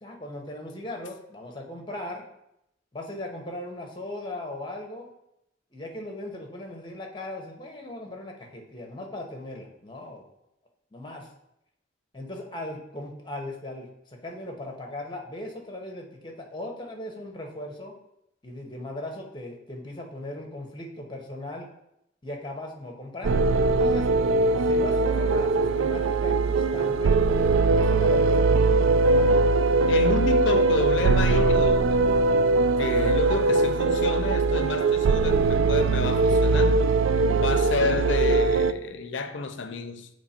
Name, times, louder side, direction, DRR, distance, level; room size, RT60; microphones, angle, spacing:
voice 1, 0.0-2.2 2.9-5.1 5.7-10.2 10.9-11.3 12.1-17.9 18.4-21.7 22.2-24.1 24.6-27.2 27.7-29.5, left 1 dB, 25° left, 0.9 m, -38 dB
sound 1, 23.2-38.7, right 3 dB, 80° right, 0.3 m, -21 dB
voice 2, 29.9-32.1 32.8-36.8 37.3-40.1, left 3 dB, 70° left, 0.6 m, -29 dB
7.9 x 3.2 x 4.3 m
head